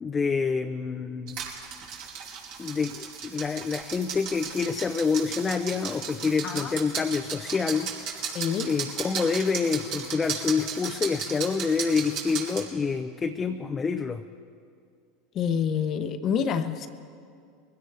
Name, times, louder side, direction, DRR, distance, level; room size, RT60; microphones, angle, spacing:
voice 1, 0.0-1.4 2.6-8.2 8.7-14.2, left 5 dB, 25° left, 6 dB, 0.6 m, -27 dB
sound 1, 1.3-12.6, right 6 dB, 60° right, 3.3 m, -35 dB
voice 2, 8.3-8.7 15.3-16.9, left 7 dB, 45° left, 9 dB, 1.0 m, -27 dB
22.0 x 16.0 x 3.4 m, 2.3 s
hypercardioid pair, 95°, 0 cm